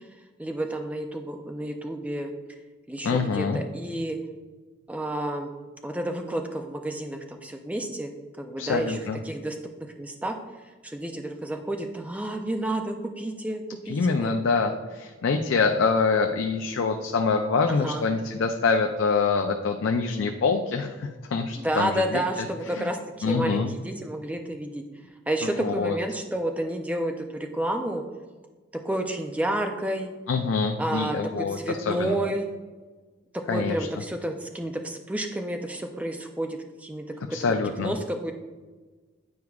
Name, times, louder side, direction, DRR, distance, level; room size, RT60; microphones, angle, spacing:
voice 1, 0.4-2.3 2.9-4.2 4.9-5.5 5.8-8.1 8.4-9.6 10.0-10.4 10.8-14.3 17.7-18.1 21.6-24.8 25.3-27.3 27.5-28.0 28.8-30.1 30.8-32.5 33.5-37.0 37.3-37.4 37.8-38.3, right 1 dB, 5° right, 4 dB, 0.4 m, -30 dB
voice 2, 3.0-3.6 8.6-9.2 13.9-22.2 22.7-22.8 23.2-23.7 25.4-26.0 30.3-32.2 33.5-33.9 37.3-37.9, left 4 dB, 80° left, 4 dB, 0.4 m, -25 dB
9.4 x 4.7 x 2.3 m, 1.3 s
head